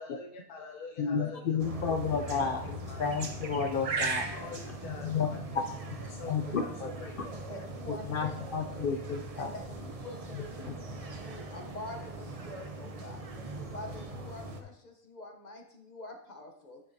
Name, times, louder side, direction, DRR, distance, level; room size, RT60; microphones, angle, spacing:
voice 1, 0.0-1.9 2.3-3.0 4.0-4.1 4.3-5.6 6.1-7.6 8.7-9.0, left 4 dB, 90° left, -1 dB, 1.3 m, -46 dB
voice 2, 1.0-2.6 3.0-4.2 4.9-5.3 5.5-5.6 6.2-6.9 7.9-9.5 10.7-10.8, left 6 dB, 75° left, 5 dB, 0.5 m, -31 dB
sound 1, 1.6-14.6, right 2 dB, 40° right, 0.5 m, -39 dB
voice 3, 7.5-8.4 8.7-8.9 9.3-13.2 13.7-16.8, left 1 dB, 35° left, 3 dB, 0.8 m, -46 dB
10.0 x 6.2 x 2.7 m, 0.72 s
omnidirectional pair, 1.5 m